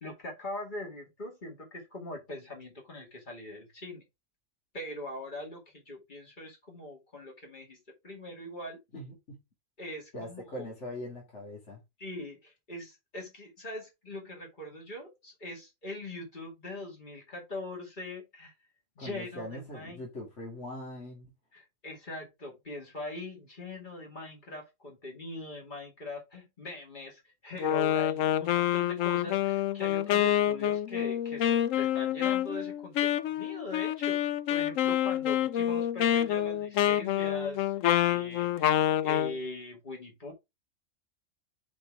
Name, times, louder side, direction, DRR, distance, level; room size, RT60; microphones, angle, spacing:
voice 1, 0.0-4.0 4.7-7.8 8.0-8.8 9.8-10.7 12.0-18.5 19.0-20.0 21.5-38.7 39.0-40.3, left 2 dB, 40° left, 2.6 m, -42 dB
voice 2, 8.9-9.4 10.1-11.8 19.0-21.3, left 1 dB, 65° left, 2.5 m, -41 dB
Wind instrument woodwind instrument, 27.6-39.3, left 11 dB, 80° left, 1.0 m, -27 dB
5.3 x 5.1 x 4.7 m
omnidirectional pair, 1.3 m